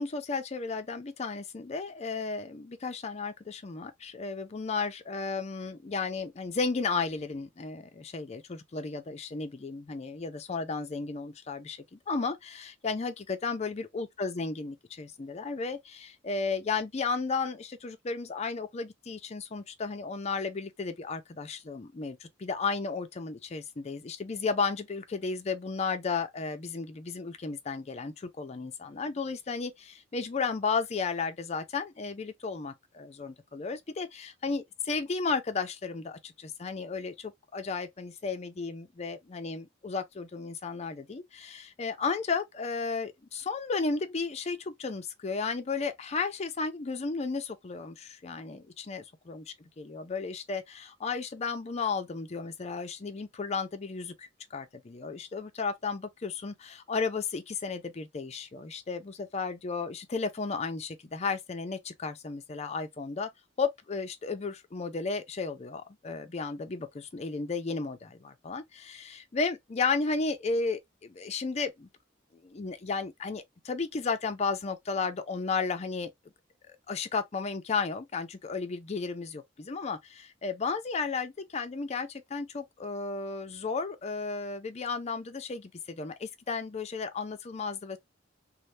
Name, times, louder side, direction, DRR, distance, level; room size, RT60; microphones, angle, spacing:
voice 1, 0.0-49.4 49.8-63.3 63.6-71.9 72.3-76.1 76.7-88.0, left 4 dB, 35° left, 0.4 m, -34 dB
2.7 x 2.1 x 3.1 m
head